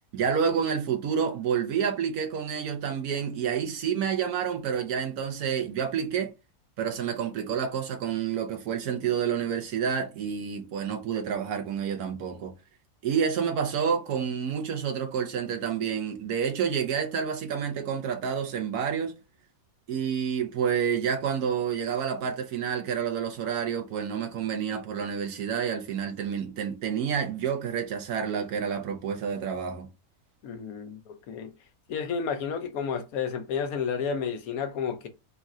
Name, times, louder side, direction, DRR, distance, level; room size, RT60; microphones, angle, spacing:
voice 1, 0.1-6.3 6.8-12.5 13.0-19.1 19.9-29.9, right 7 dB, 85° right, 1.3 m, -29 dB
voice 2, 30.4-31.0 31.3-31.5 31.9-35.1, left 6 dB, 75° left, 1.1 m, -31 dB
3.7 x 2.5 x 4.2 m
omnidirectional pair, 1.5 m